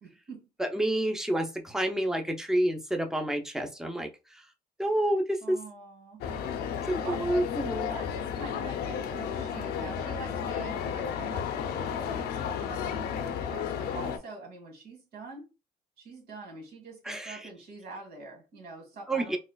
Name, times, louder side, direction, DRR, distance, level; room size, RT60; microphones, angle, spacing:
voice 1, 0.0-0.5 5.4-6.2 7.0-7.3 7.9-12.0 12.4-15.5 16.0-19.4, right 3 dB, 70° right, 1.8 m, -44 dB
voice 2, 0.6-4.1 4.8-5.6 6.9-7.9 17.1-17.5 19.1-19.4, right 1 dB, 5° right, 0.6 m, -29 dB
sound 1, 6.2-14.2, left 7 dB, 70° left, 0.7 m, -33 dB
4.2 x 2.4 x 2.3 m
cardioid pair, 110°, 17 cm